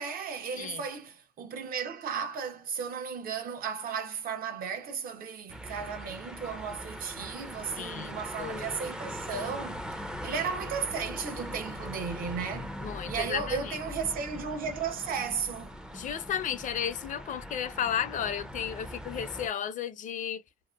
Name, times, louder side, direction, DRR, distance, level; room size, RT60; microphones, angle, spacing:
voice 1, 0.0-9.9 10.2-12.7 13.1-15.7, right 6 dB, 60° right, 0.8 m, -35 dB
sound 1, 5.5-19.5, equal, 5° right, 0.4 m, -41 dB
voice 2, 7.8-8.7 12.8-13.8 15.9-20.4, left 9 dB, 50° left, 0.5 m, -34 dB
2.8 x 2.1 x 2.3 m
cardioid pair, 110°, 17 cm